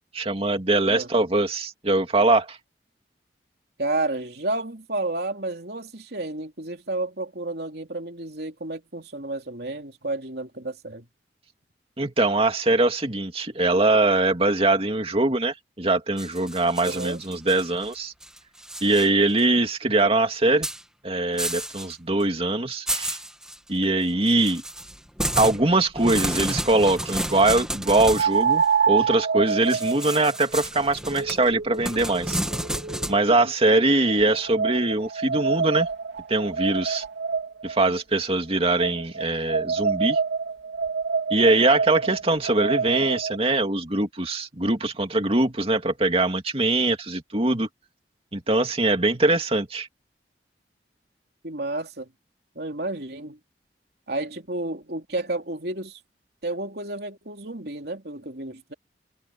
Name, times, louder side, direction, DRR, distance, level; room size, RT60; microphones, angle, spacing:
voice 1, 0.0-2.6 12.0-18.1 18.8-20.7 21.0-23.2 23.7-24.6 25.4-32.4 33.1-35.9 36.3-37.0 37.6-40.2 41.3-47.7 48.3-49.9, right 2 dB, 35° right, 2.5 m, -22 dB
voice 2, 3.8-11.1 16.8-17.2 33.3-33.5 51.4-52.1 52.5-53.4 54.1-56.0 56.4-58.7, right 2 dB, 60° right, 3.3 m, -31 dB
sound 1, 16.2-17.9 18.2-19.1 19.4-19.5 20.6-20.8 21.4-21.9 22.2-22.3 22.9-23.6 24.3-28.3 29.7-33.2, right 1 dB, 5° right, 2.2 m, -31 dB
sound 2, 25.5-25.6 28.1-33.3 34.0-37.8 38.8-43.4, right 6 dB, 90° right, 3.3 m, -27 dB
head